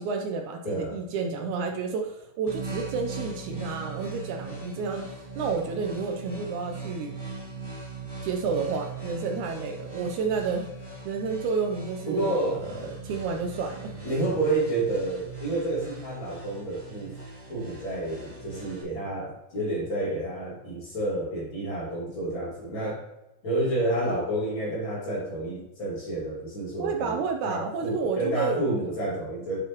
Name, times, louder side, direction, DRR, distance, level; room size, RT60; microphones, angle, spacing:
voice 1, 0.0-7.1 8.2-10.7 11.1-13.9 26.8-28.7, right 5 dB, 75° right, 3 dB, 2.0 m, -30 dB
voice 2, 0.6-1.0 12.1-12.6 14.0-17.2 17.5-23.0 23.4-29.6, right 2 dB, 40° left, -4 dB, 2.7 m, -29 dB
sound 1, 2.5-18.8, right 3 dB, 15° right, 0.8 m, -40 dB
7.9 x 7.0 x 3.0 m, 0.93 s
omnidirectional pair, 3.7 m